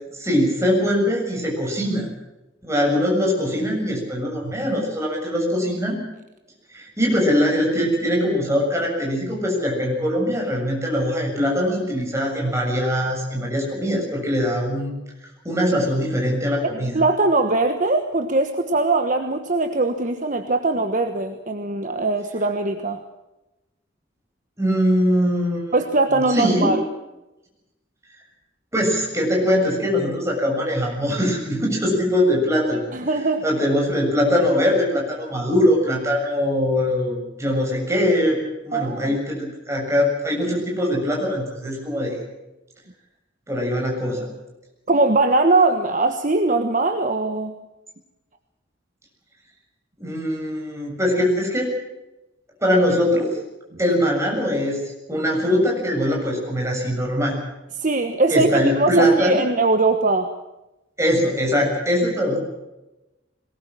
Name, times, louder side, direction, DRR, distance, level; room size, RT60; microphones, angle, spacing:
voice 1, 0.1-2.1 2.6-6.0 6.7-14.9 15.4-16.9 24.6-25.8 26.1-26.7 28.7-32.8 33.4-38.4 38.6-42.2 43.5-44.3 50.0-51.7 52.6-53.4 53.8-54.8 55.1-57.4 58.3-59.4 61.0-62.4, equal, 15° right, -1 dB, 7.1 m, -22 dB
voice 2, 16.9-23.0 25.7-26.9 32.9-33.4 38.7-39.2 44.9-47.5 57.7-60.3, right 2 dB, 40° right, 7 dB, 1.3 m, -21 dB
22.0 x 20.0 x 7.6 m, 0.99 s
head